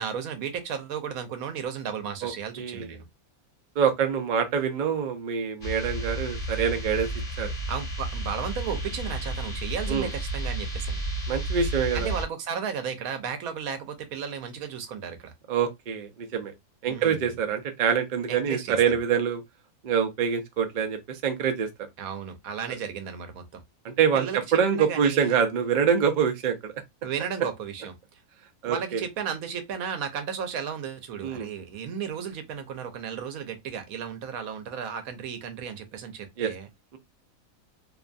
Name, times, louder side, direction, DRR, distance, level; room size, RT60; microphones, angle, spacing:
voice 1, 0.0-3.0 7.7-11.0 11.9-15.3 16.9-17.3 18.3-18.8 22.0-23.6 24.1-24.4 24.7-25.4 27.0-27.9 28.6-36.7, right 7 dB, 80° right, 1.1 m, -34 dB
voice 2, 2.6-3.0 3.8-7.1 7.4-7.5 9.9-10.1 11.3-12.1 15.5-16.5 16.8-19.4 19.8-21.9 23.8-26.8 28.6-29.0 31.2-31.5 36.4-36.5, right 7 dB, 65° right, 0.4 m, -25 dB
sound 1, 5.6-12.2, right 1 dB, 35° left, 0.9 m, -32 dB
2.7 x 2.2 x 2.4 m
omnidirectional pair, 1.5 m